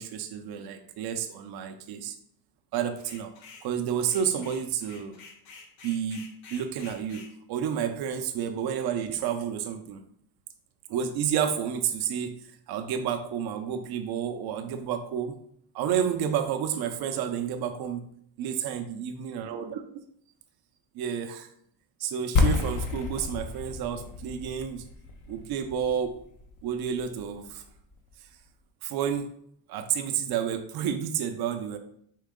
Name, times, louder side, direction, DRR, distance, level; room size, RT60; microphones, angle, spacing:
voice 1, 0.0-2.2 2.7-3.3 3.6-5.2 5.8-10.0 10.9-12.4 12.7-15.3 15.7-18.0 18.4-19.8 20.9-21.5 22.0-24.9 25.3-26.1 26.6-27.6 28.8-29.3 29.7-31.8, right 8 dB, 65° right, 6 dB, 0.6 m, -30 dB
sound 1, 3.0-3.7 4.0-7.3, left 4 dB, 80° left, 0.9 m, -49 dB
sound 2, 22.4-28.1, left 4 dB, 45° left, 0.8 m, -30 dB
4.6 x 3.0 x 3.6 m, 0.67 s
cardioid pair, 110°, 41 cm